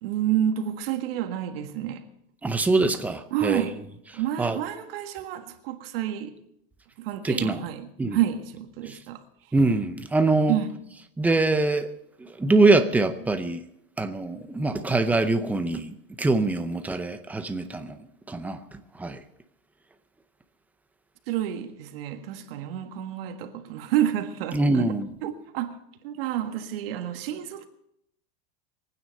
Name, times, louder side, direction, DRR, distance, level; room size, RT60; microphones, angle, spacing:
voice 1, 0.0-2.0 3.3-3.8 4.1-6.4 7.0-9.2 10.5-10.8 21.3-24.9 25.2-25.8 26.0-27.6, right 11 dB, 75° right, 1.7 m, -29 dB
voice 2, 2.4-3.7 4.4-4.6 7.2-7.6 8.0-8.2 8.9-9.0 9.5-10.6 11.2-11.9 12.4-13.6 14.0-18.0 18.3-18.6 19.0-19.2 24.5-25.1, right 2 dB, 5° right, 0.6 m, -23 dB
23.0 x 9.4 x 5.4 m
supercardioid pair, 165°, 29 cm